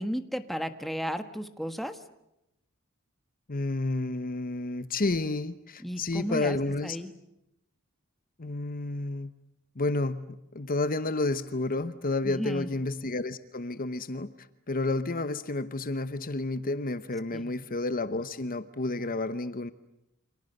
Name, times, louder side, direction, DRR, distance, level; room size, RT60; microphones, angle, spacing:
voice 1, 0.0-2.0 5.8-7.1 12.2-12.7 17.3-17.5, equal, ahead, 8 dB, 1.5 m, -34 dB
voice 2, 3.5-7.0 8.4-9.3 9.8-14.3 14.7-19.7, left 2 dB, 40° left, 12 dB, 1.0 m, -30 dB
29.5 x 26.5 x 6.7 m, 0.85 s
head